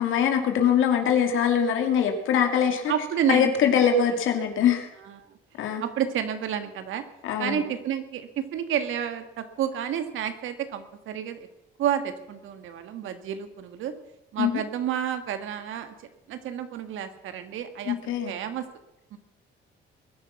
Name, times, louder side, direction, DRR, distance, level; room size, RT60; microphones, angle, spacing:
voice 1, 0.0-2.9 3.3-4.9 5.6-5.8 7.2-7.6 14.4-14.6 17.9-18.3, left 8 dB, 80° left, 4 dB, 2.4 m, -23 dB
voice 2, 2.9-3.8 4.1-4.2 5.1-5.4 5.8-7.0 7.4-11.5 11.8-13.9 14.3-15.9 16.3-18.7 19.1-19.2, right 9 dB, 85° right, 8 dB, 1.8 m, -30 dB
21.0 x 10.5 x 6.0 m, 0.89 s
cardioid pair, 90°, 20 cm